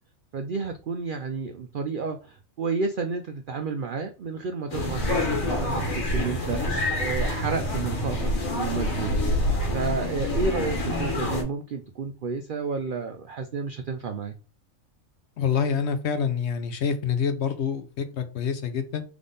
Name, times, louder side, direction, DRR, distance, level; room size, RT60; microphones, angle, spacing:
voice 1, 0.3-9.2 9.7-14.3, right 4 dB, 70° right, 0.5 m, -31 dB
sound 1, 4.7-11.4, left 1 dB, 85° left, 1.7 m, -26 dB
voice 2, 15.4-19.0, left 6 dB, 65° left, 0.8 m, -27 dB
3.6 x 3.4 x 3.8 m
omnidirectional pair, 1.4 m